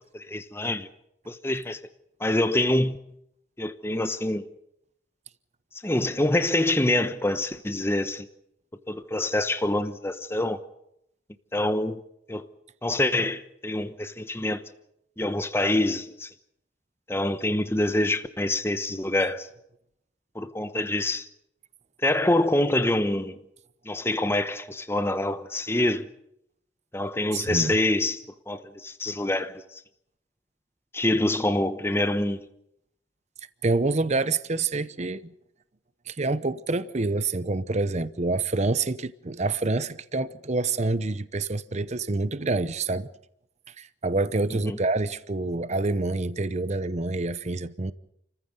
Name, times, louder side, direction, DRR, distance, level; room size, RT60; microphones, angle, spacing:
voice 1, 0.1-0.9 1.3-1.8 2.2-3.0 3.6-4.4 5.8-8.3 8.9-10.6 11.5-12.0 12.3-12.5 12.8-14.6 15.2-16.3 17.1-19.5 20.3-21.2 22.0-23.4 23.9-26.1 26.9-28.2 28.5-29.8 30.9-32.5 44.6-44.8, left 1 dB, 15° left, 0.9 m, -26 dB
voice 2, 27.3-27.7 33.6-35.3 36.1-43.1 43.8-47.9, right 3 dB, 35° right, 0.8 m, -27 dB
30.0 x 15.0 x 7.9 m
head